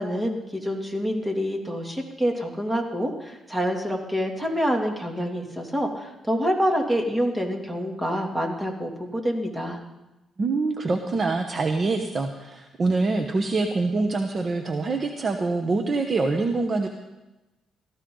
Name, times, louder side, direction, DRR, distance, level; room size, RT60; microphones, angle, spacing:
voice 1, 0.0-9.8, equal, 10° right, 1 dB, 2.8 m, -27 dB
voice 2, 10.4-16.9, right 3 dB, 40° right, 4 dB, 1.2 m, -25 dB
17.5 x 14.5 x 4.0 m, 1.0 s
cardioid pair, 90°, 0 cm